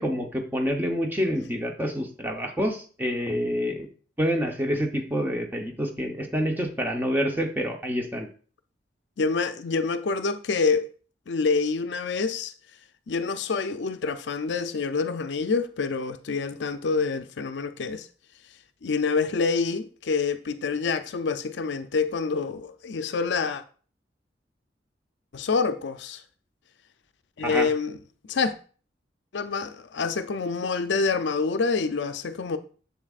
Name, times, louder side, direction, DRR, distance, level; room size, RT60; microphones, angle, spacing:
voice 1, 0.0-3.9 4.2-8.3 27.4-27.7, equal, 10° right, 0.8 m, -27 dB
voice 2, 9.2-10.9 11.3-12.5 13.1-18.1 18.8-23.6 25.3-26.2 27.4-28.0 28.3-28.6 29.3-32.6, left 4 dB, 70° left, 0.5 m, -27 dB
7.3 x 7.2 x 2.4 m
head